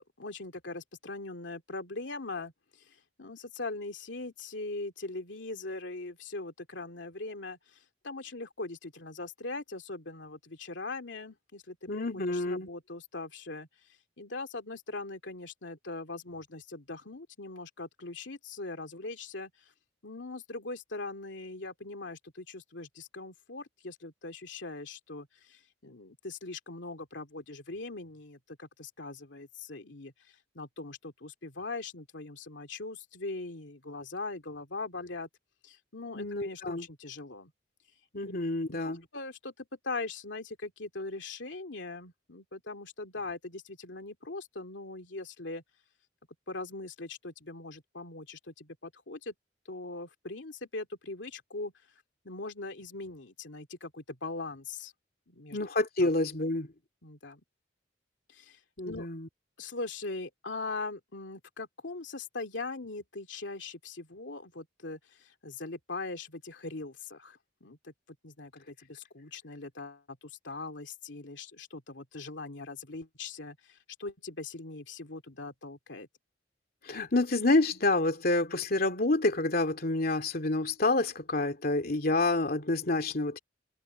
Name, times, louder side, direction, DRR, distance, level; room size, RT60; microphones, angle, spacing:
voice 1, 0.0-2.5 2.8-11.9 12.1-13.7 14.2-19.5 20.0-30.1 30.5-35.3 35.6-37.5 38.7-45.6 46.5-49.3 49.7-51.7 52.2-54.9 55.3-55.6 56.0-56.1 57.0-57.4 58.3-58.6 58.8-59.1 59.6-67.9 68.2-76.1, left 3 dB, 85° left, 2.6 m, -41 dB
voice 2, 11.9-12.7 36.1-36.9 38.1-39.0 55.5-56.7 58.8-59.3 76.8-83.4, left 2 dB, 55° left, 2.7 m, -28 dB
head